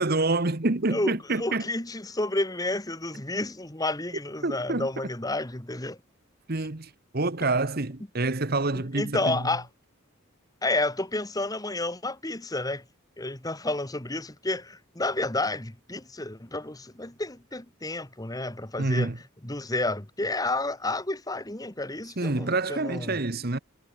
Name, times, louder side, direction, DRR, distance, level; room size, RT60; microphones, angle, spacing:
voice 1, 0.0-1.6 4.4-4.9 6.5-9.5 18.8-19.2 22.2-23.6, right 2 dB, 45° right, 1.3 m, -27 dB
voice 2, 0.9-6.0 8.7-9.7 10.6-12.8 13.2-19.1 19.4-23.2, left 2 dB, 15° left, 1.6 m, -30 dB
head